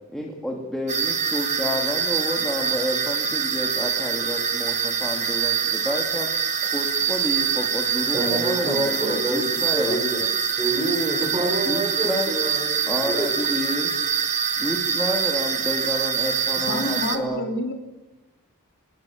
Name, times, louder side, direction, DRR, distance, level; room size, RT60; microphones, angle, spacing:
voice 1, 0.1-6.3 6.7-10.0 11.7-12.4 12.9-13.9 14.6-17.4, equal, ahead, -2 dB, 2.7 m, -30 dB
sound 1, 0.9-17.2, right 7 dB, 30° right, 2.1 m, -25 dB
voice 2, 8.1-10.3 10.6-13.3, right 1 dB, 15° right, 3 dB, 5.5 m, -27 dB
voice 3, 16.7-17.7, left 2 dB, 55° left, 3 dB, 3.4 m, -28 dB
25.5 x 21.0 x 7.3 m, 1.1 s
head